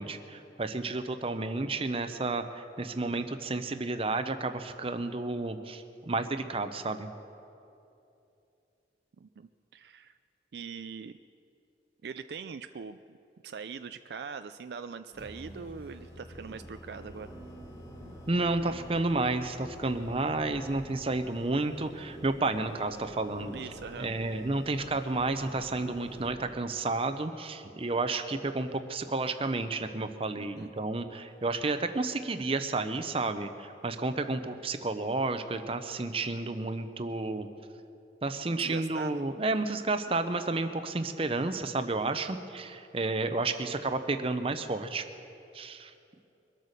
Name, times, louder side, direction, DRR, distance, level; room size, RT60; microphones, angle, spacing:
voice 1, 0.0-7.1 18.3-23.5 24.0-37.5 38.2-45.0 45.5-45.9, right 3 dB, 30° right, 9 dB, 0.7 m, -31 dB
voice 2, 9.2-10.1 10.5-11.1 12.0-13.2 13.4-17.3 23.5-24.1 30.4-30.7 38.6-39.2, right 5 dB, 65° right, 10 dB, 0.4 m, -42 dB
sound 1, 15.1-26.6, equal, 35° left, 2.9 m, -49 dB
sound 2, 15.2-26.6, equal, 60° left, 1.9 m, -53 dB
23.0 x 8.3 x 6.6 m, 2.7 s
head